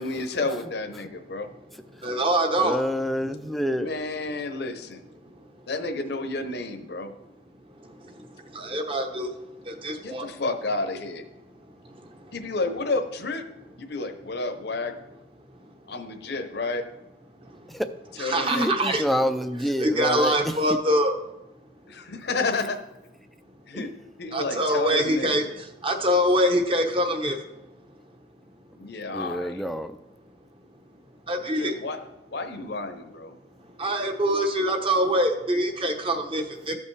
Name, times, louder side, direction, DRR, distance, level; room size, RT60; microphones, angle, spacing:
voice 1, 0.0-1.5 3.8-5.0 5.7-7.1 10.0-11.2 12.3-13.4 13.8-14.9 15.9-16.8 18.2-19.0 21.9-22.8 23.7-23.9 24.2-25.5 28.8-29.6 31.6-32.0 32.3-33.3, left 3 dB, 60° left, 6 dB, 0.8 m, -31 dB
voice 2, 2.0-2.8 8.7-9.3 9.8-10.2 18.2-19.0 19.8-21.1 24.3-25.4 25.8-27.4 31.3-31.7 33.8-36.7, equal, 30° right, 5 dB, 0.9 m, -24 dB
voice 3, 2.6-3.9 17.7-17.9 18.5-20.4 20.7-20.8 23.7-23.9 29.1-30.0, equal, ahead, 8 dB, 0.3 m, -27 dB
14.5 x 5.4 x 3.3 m, 0.95 s
head